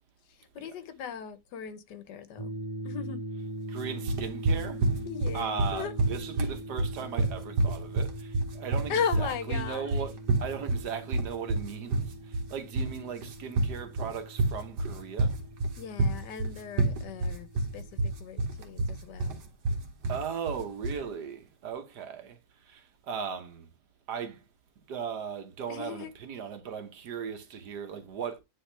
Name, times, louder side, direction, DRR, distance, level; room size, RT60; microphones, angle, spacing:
voice 1, 0.5-2.5 2.8-3.2 5.0-5.9 8.9-9.9 15.8-17.5 17.7-19.4 25.7-26.1, left 7 dB, 80° left, 1.5 m, -36 dB
sound 1, 2.4-18.2, right 1 dB, 40° left, 0.3 m, -42 dB
voice 2, 3.7-4.8 5.3-10.1 10.4-15.4 20.1-22.4 22.6-23.7 24.1-24.4 24.9-28.4, right 7 dB, 75° right, 1.6 m, -37 dB
sound 2, 4.1-21.1, right 2 dB, 90° right, 1.9 m, -28 dB
9.7 x 3.5 x 3.3 m
omnidirectional pair, 1.8 m